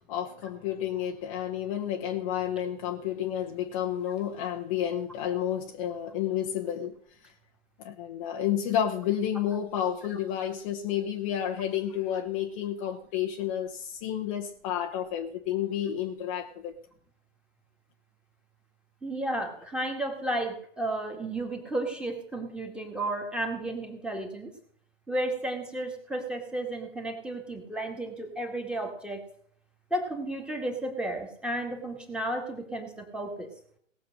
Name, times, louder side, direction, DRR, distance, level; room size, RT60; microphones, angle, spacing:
voice 1, 0.0-6.9 7.2-7.3 7.8-16.8, left 10 dB, 25° left, 0.9 m, -31 dB
voice 2, 19.0-24.5 25.1-29.2 29.9-33.5, right 1 dB, ahead, 1.8 m, -33 dB
18.5 x 6.9 x 6.4 m
hypercardioid pair, 135°, 39 cm